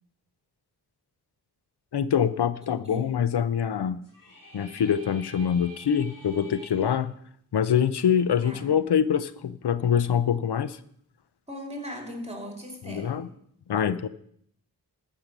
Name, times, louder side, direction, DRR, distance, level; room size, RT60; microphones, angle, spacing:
voice 1, 1.9-4.0 4.5-7.1 7.5-10.8 12.9-13.3 13.7-14.1, left 8 dB, 80° left, 14 dB, 0.7 m, -25 dB
sound 1, 4.0-6.9, equal, 55° left, 3.4 m, -49 dB
voice 2, 8.4-8.8 11.5-13.3, equal, 15° right, 3 dB, 2.8 m, -38 dB
14.0 x 5.7 x 6.0 m, 0.67 s
wide cardioid pair, 50°, 39 cm